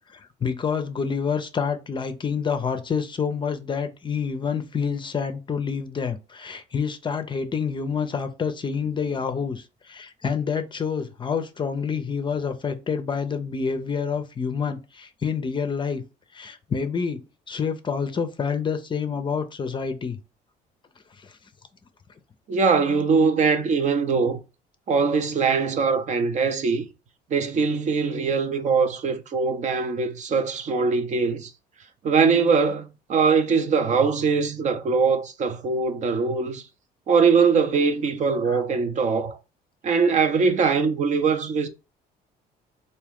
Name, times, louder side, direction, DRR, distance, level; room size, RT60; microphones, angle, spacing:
voice 1, 0.0-16.0 16.3-17.2 17.5-20.2 21.2-21.4 38.4-38.6, left 6 dB, 30° left, 0.5 m, -28 dB
voice 2, 22.5-24.4 24.9-26.9 27.3-31.5 32.0-36.6 37.1-39.4 39.8-41.7, right 5 dB, 45° right, 0.6 m, -22 dB
3.6 x 2.7 x 3.5 m
cardioid pair, 110°, 17 cm